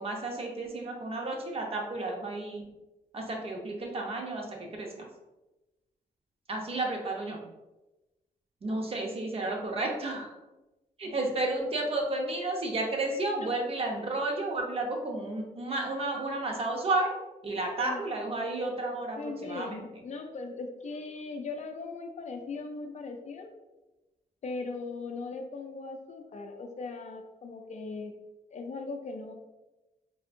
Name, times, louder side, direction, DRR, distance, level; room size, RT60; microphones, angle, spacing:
voice 1, 0.0-2.6 3.1-4.9 6.5-7.4 8.6-10.4 11.0-17.1 17.4-19.8, right 2 dB, 40° right, 0 dB, 0.6 m, -32 dB
voice 2, 19.2-23.5 24.4-28.1 28.5-29.3, left 3 dB, 50° left, 4 dB, 0.4 m, -39 dB
3.4 x 2.6 x 2.5 m, 1.0 s
wide cardioid pair, 135°, 15 cm